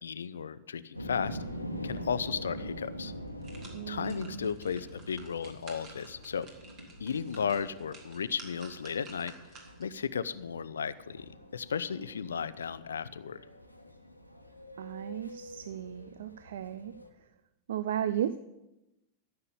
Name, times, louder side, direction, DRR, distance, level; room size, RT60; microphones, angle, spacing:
voice 1, 0.0-1.4 1.8-3.1 3.9-6.5 7.0-9.3 9.8-13.4, left 6 dB, 70° left, 15 dB, 0.5 m, -34 dB
sound 1, 0.9-17.1, equal, 90° left, 1.2 m, -45 dB
sound 2, 3.1-10.0 10.4-10.5, right 3 dB, 35° right, 3.0 m, -53 dB
voice 2, 3.7-4.5 14.8-16.9 17.7-18.5, right 10 dB, 60° right, 14 dB, 0.4 m, -35 dB
13.5 x 6.8 x 8.3 m, 0.95 s
figure-of-eight pair, 90°, 0 cm